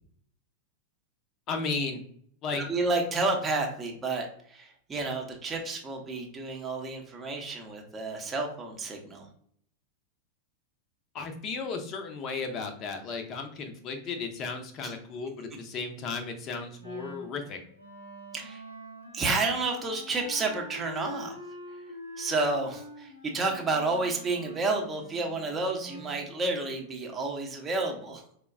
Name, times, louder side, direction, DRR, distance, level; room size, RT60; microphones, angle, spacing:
voice 1, 1.5-2.0 2.4-2.6 11.1-17.6, left 4 dB, 35° left, 5 dB, 0.6 m, -34 dB
voice 2, 2.5-9.3 14.8-14.9 18.3-18.6 19.1-21.3 22.2-28.2, right 3 dB, 20° right, 1 dB, 0.7 m, -30 dB
Wind instrument woodwind instrument, 16.8-26.3, left 1 dB, 80° left, 0.9 m, -45 dB
4.5 x 2.1 x 2.4 m, 0.64 s
figure-of-eight pair, 90°, 0 cm